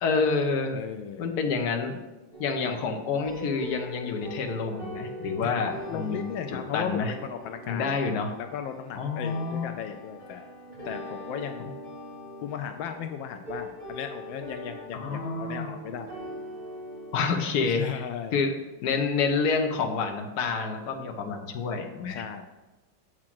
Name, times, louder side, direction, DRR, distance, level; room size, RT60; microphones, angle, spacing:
voice 1, 0.0-0.8 1.2-2.0 2.4-7.1 7.7-8.3 9.0-9.7 11.6-11.7 15.0-15.7 17.1-18.0 18.3-18.5 18.8-22.2, left 4 dB, 60° left, 4 dB, 1.3 m, -28 dB
voice 2, 0.7-1.3 2.6-2.8 5.4-8.0 8.4-10.5 10.8-11.7 12.4-16.1 17.7-18.4 22.1-22.4, left 8 dB, 80° left, 6 dB, 1.3 m, -36 dB
sound 1, 2.3-17.2, equal, 25° left, 3.1 m, -41 dB
7.4 x 4.9 x 6.0 m, 1.1 s
omnidirectional pair, 2.1 m